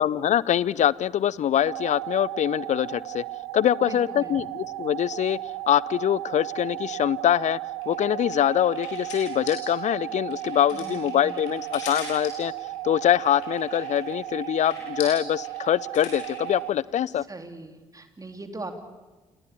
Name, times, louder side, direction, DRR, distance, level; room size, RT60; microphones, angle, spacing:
voice 1, 0.0-3.2 3.5-5.4 5.7-7.6 7.9-12.5 12.8-17.2, left 10 dB, 50° left, 23 dB, 0.6 m, -24 dB
sound 1, 1.7-16.7, right 17 dB, 80° right, 0.7 m, -35 dB
voice 2, 3.8-4.4 10.7-11.6 17.3-18.8, right 2 dB, 20° right, 7 dB, 3.4 m, -40 dB
sound 2, 7.8-16.5, left 5 dB, 80° left, 5.5 m, -41 dB
29.0 x 19.0 x 7.1 m, 1.2 s
figure-of-eight pair, 45°, 16 cm